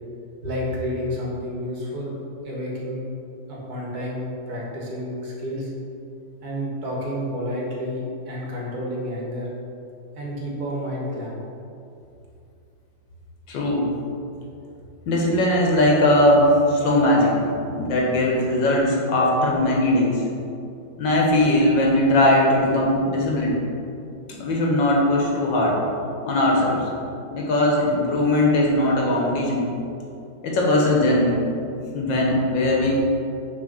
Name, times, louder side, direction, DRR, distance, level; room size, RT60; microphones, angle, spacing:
voice 1, 0.4-2.2 2.4-3.0 3.5-5.7 6.4-9.5 10.2-11.4, equal, 60° right, -3 dB, 1.7 m, -30 dB
voice 2, 13.5-13.9 15.1-17.4 17.7-20.2 21.0-23.6 24.3-25.8 26.3-26.8 27.3-29.7 30.4-31.4 31.9-33.0, left 1 dB, 85° left, -2 dB, 1.8 m, -19 dB
6.3 x 3.9 x 5.2 m, 2.6 s
omnidirectional pair, 2.0 m